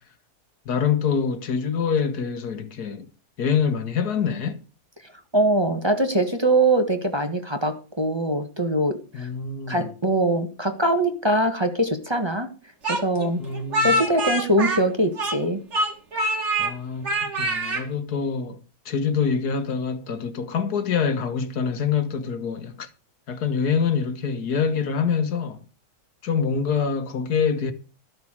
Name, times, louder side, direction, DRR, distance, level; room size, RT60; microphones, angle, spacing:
voice 1, 0.7-3.1 3.4-4.6 9.1-9.9 13.4-13.9 16.6-22.9 23.3-25.6 26.2-27.7, left 6 dB, 90° left, 1.9 m, -25 dB
voice 2, 5.3-9.3 9.7-12.5 12.9-13.4 13.8-15.6, right 1 dB, 20° right, 1.5 m, -22 dB
Speech, 12.8-15.5 15.7-16.7 17.0-17.8, right 1 dB, 45° right, 2.2 m, -25 dB
14.0 x 6.5 x 6.5 m
omnidirectional pair, 1.6 m